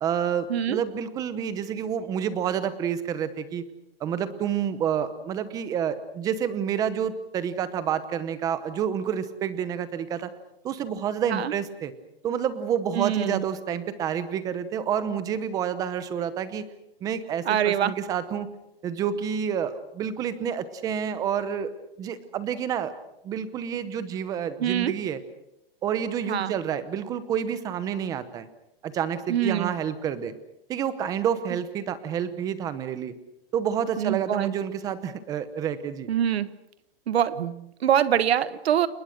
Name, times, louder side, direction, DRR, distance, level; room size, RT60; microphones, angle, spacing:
voice 1, 0.0-3.6 4.0-10.3 10.6-11.9 12.2-16.6 17.0-18.5 18.8-21.7 22.0-22.9 23.2-25.2 25.8-28.5 28.8-30.3 30.7-33.1 33.5-36.1, right 8 dB, 10° right, 13 dB, 0.9 m, -29 dB
voice 2, 12.9-13.4 17.4-17.9 24.6-25.0 26.3-26.5 29.3-29.7 34.0-34.5 36.1-36.5 37.1-38.9, right 10 dB, 85° right, 14 dB, 1.5 m, -24 dB
29.5 x 19.5 x 6.6 m, 0.87 s
supercardioid pair, 175°, 31 cm